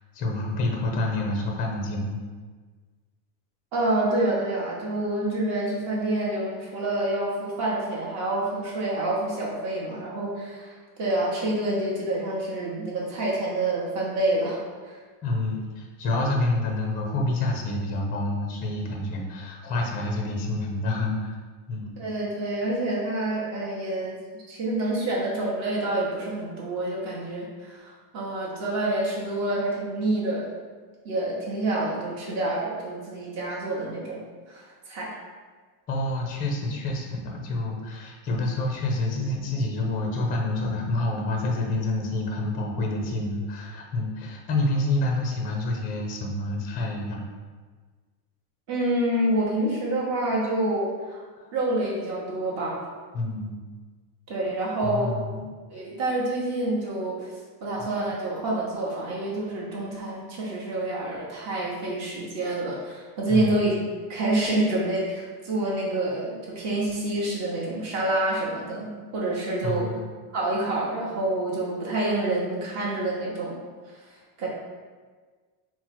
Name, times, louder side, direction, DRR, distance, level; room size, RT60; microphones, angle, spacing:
voice 1, 0.1-2.2 15.2-21.4 21.7-21.9 35.9-47.2 51.4-51.5 53.1-53.5 54.8-55.4 63.3-63.6 69.6-70.0, left 2 dB, 20° left, 0 dB, 0.4 m, -28 dB
voice 2, 3.7-15.0 22.0-24.2 24.5-30.5 31.0-34.2 34.5-35.1 48.7-51.2 51.5-52.8 54.3-55.1 55.7-63.8 64.1-69.9 70.3-73.6 74.4-74.5, right 1 dB, 40° right, -5 dB, 1.0 m, -27 dB
4.3 x 2.0 x 4.1 m, 1.4 s
cardioid pair, 165°, 42 cm